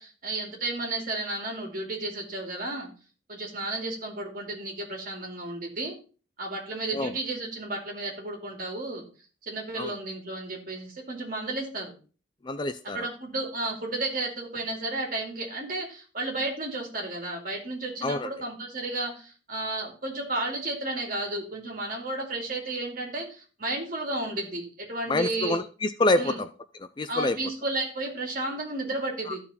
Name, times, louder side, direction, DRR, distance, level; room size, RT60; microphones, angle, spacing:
voice 1, 0.0-2.9 3.3-6.0 6.4-9.1 9.4-11.9 12.8-25.6 26.2-26.4 27.1-29.4, right 2 dB, 45° right, 0 dB, 2.5 m, -33 dB
voice 2, 12.4-13.1 18.0-18.3 25.1-26.5 27.0-27.4 29.3-29.4, left 2 dB, 25° left, 11 dB, 0.3 m, -26 dB
13.0 x 4.4 x 4.2 m, 0.38 s
head